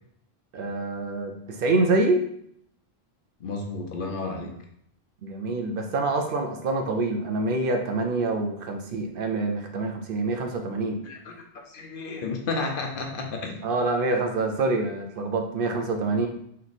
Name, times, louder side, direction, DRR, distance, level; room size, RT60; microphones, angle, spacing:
voice 1, 0.5-2.2 5.2-11.0 13.6-16.3, right 2 dB, 65° right, 4 dB, 0.8 m, -26 dB
voice 2, 3.4-4.6 11.0-11.3 11.7-13.6, left 3 dB, 60° left, 2 dB, 0.9 m, -32 dB
3.3 x 2.9 x 4.0 m, 0.69 s
omnidirectional pair, 1.0 m